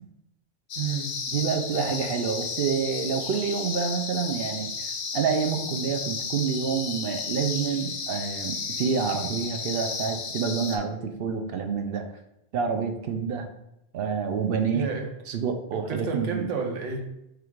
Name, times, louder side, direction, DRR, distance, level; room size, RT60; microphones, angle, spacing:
sound 1, 0.7-10.8, left 5 dB, 60° left, 0.8 m, -33 dB
voice 1, 0.8-1.1 14.7-15.1 15.7-17.1, right 6 dB, 85° right, 2 dB, 1.1 m, -31 dB
voice 2, 1.3-12.1 12.5-13.4 13.9-14.9 15.3-16.4, right 6 dB, 60° right, 6 dB, 0.7 m, -28 dB
4.9 x 2.4 x 4.5 m, 0.83 s
omnidirectional pair, 1.2 m